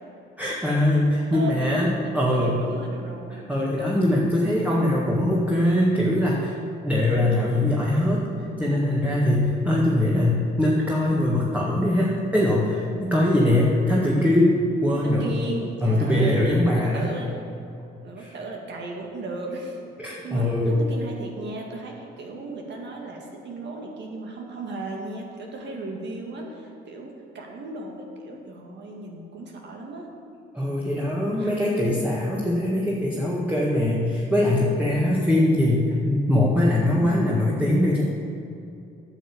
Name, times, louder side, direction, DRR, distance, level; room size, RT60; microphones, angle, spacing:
voice 1, 0.4-2.6 3.5-6.5 6.8-8.3 8.6-15.3 15.8-17.1 18.2-18.3 20.0-20.7 30.5-38.0, left 1 dB, 5° right, -5 dB, 1.8 m, -22 dB
voice 2, 1.3-3.5 14.9-17.5 18.0-19.8 20.2-30.1 31.4-31.9, right 2 dB, 65° right, 0 dB, 1.9 m, -36 dB
9.1 x 6.4 x 8.6 m, 2.6 s
cardioid pair, 90°, 20 cm